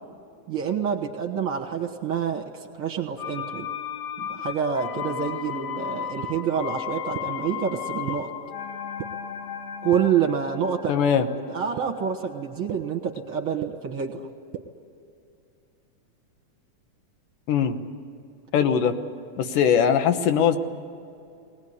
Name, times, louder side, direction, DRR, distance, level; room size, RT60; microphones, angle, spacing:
voice 1, 0.5-3.7 4.2-8.3 9.8-11.0 11.5-14.3, right 7 dB, 50° right, 1 dB, 1.9 m, -27 dB
sound 1, 3.2-12.9 13.2-13.3, left 9 dB, 70° left, 1.9 m, -35 dB
sound 2, 6.2-6.3 7.1-7.2 8.1-8.2 9.0-9.1 9.9-10.0 10.8-10.9 11.8-11.9 12.7-12.8 13.6-13.7 14.5-14.6, right 12 dB, 70° right, 2.0 m, -32 dB
voice 2, 10.9-11.3 17.5-17.8 18.5-19.0 19.4-20.6, left 8 dB, 90° left, 8 dB, 2.7 m, -20 dB
21.5 x 19.0 x 9.5 m, 2.6 s
omnidirectional pair, 3.6 m